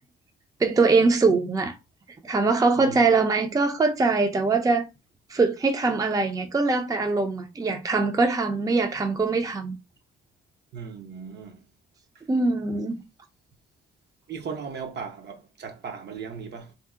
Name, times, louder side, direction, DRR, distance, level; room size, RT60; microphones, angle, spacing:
voice 1, 0.6-1.7 2.2-4.9 5.3-9.7 12.3-13.0, right 3 dB, 20° right, 0.5 m, -22 dB
voice 2, 10.7-11.7 12.1-12.2 14.3-16.7, right 6 dB, 60° right, 0.8 m, -37 dB
2.7 x 2.1 x 3.5 m
cardioid pair, 90°, 20 cm